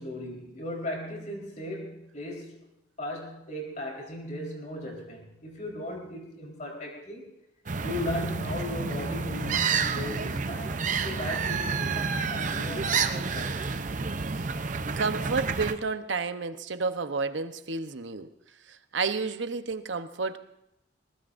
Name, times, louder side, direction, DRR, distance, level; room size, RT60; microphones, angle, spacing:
voice 1, 0.0-2.6 3.0-7.3 7.8-13.7, left 1 dB, 40° left, 0 dB, 4.2 m, -37 dB
sound 1, 7.7-15.7, right 5 dB, 45° right, 0.7 m, -29 dB
voice 2, 15.0-18.3 18.7-20.4, right 4 dB, 85° right, 10 dB, 0.9 m, -31 dB
22.0 x 19.5 x 2.6 m, 0.84 s
head